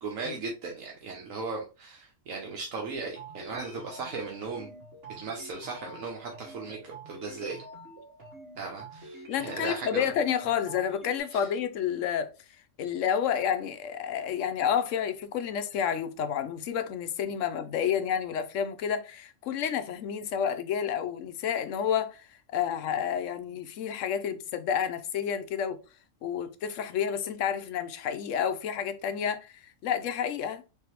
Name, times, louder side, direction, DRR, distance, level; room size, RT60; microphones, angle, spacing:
voice 1, 0.0-4.7 5.2-7.6 8.6-10.1 11.3-11.5, right 4 dB, 85° right, 1.2 m, -37 dB
sound 1, 2.9-11.2, right 1 dB, 50° right, 1.6 m, -47 dB
voice 2, 9.3-12.3 12.8-25.8 26.2-30.6, left 8 dB, 75° left, 0.9 m, -30 dB
3.8 x 3.4 x 2.9 m
omnidirectional pair, 1.4 m